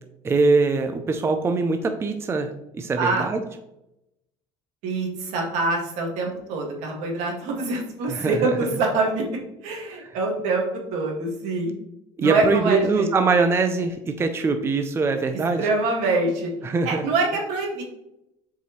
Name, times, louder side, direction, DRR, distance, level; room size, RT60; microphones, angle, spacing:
voice 1, 0.2-2.5 2.7-3.4 8.1-8.5 10.0-10.1 12.2-15.7 16.6-17.0, right 4 dB, 20° right, 7 dB, 0.5 m, -22 dB
voice 2, 4.8-9.3 9.6-10.6 10.9-11.7 12.2-13.1 15.6-16.5 16.8-17.8, right 3 dB, 80° right, 0 dB, 1.9 m, -25 dB
6.8 x 4.7 x 3.1 m, 0.85 s
cardioid pair, 130°, 12 cm